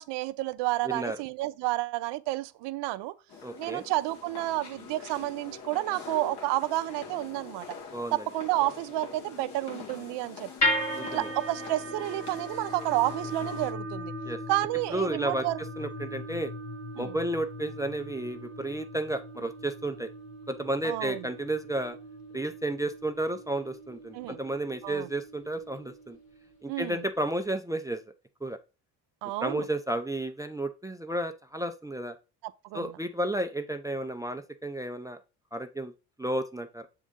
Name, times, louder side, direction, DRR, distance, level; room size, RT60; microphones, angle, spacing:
voice 1, 0.0-3.1 3.6-7.7 8.1-10.5 11.1-14.1 14.5-15.6 17.0-17.2 20.8-21.3 24.1-24.4 24.8-25.1 26.7-27.0 29.2-29.7 32.4-32.9, right 17 dB, 75° right, 0.6 m, -30 dB
voice 2, 0.8-1.2 3.4-3.8 7.9-8.2 10.9-11.3 14.2-14.4 14.9-15.4 15.8-16.5 17.0-20.1 20.5-22.0 22.3-26.2 26.6-28.0 28.4-28.6 29.4-32.1 32.7-35.2 35.5-35.9 36.2-36.9, right 1 dB, 10° right, 0.5 m, -32 dB
sound 1, 3.3-13.7, left 5 dB, 65° left, 1.9 m, -44 dB
sound 2, 10.6-26.8, left 1 dB, 40° left, 1.9 m, -37 dB
7.1 x 3.8 x 3.6 m
supercardioid pair, 70°, 42 cm